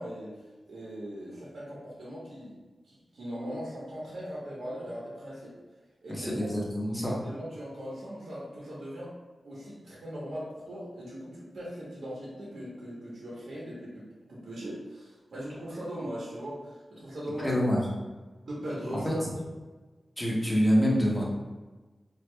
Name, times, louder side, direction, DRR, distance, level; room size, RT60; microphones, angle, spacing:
voice 1, 0.0-2.6 2.9-5.6 6.0-6.5 7.0-9.1 9.4-17.5 18.4-19.2, equal, 80° right, -6 dB, 1.0 m, -39 dB
voice 2, 6.1-7.1 17.4-17.8 19.0-19.1 20.2-21.2, equal, 15° left, -4 dB, 0.9 m, -26 dB
4.7 x 2.5 x 2.2 m, 1.3 s
wide cardioid pair, 85°, 0 cm